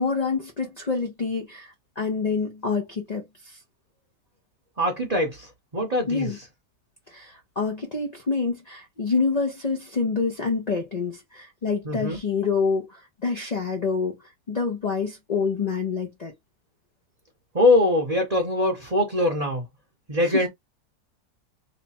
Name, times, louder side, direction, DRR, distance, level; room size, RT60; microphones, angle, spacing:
voice 1, 0.0-3.6 6.1-6.4 7.1-16.3 20.2-20.4, left 4 dB, 55° left, 0.4 m, -27 dB
voice 2, 4.8-6.4 11.8-12.2 17.5-19.6 20.1-20.5, left 1 dB, 30° right, 0.8 m, -22 dB
3.2 x 2.2 x 4.1 m
omnidirectional pair, 1.8 m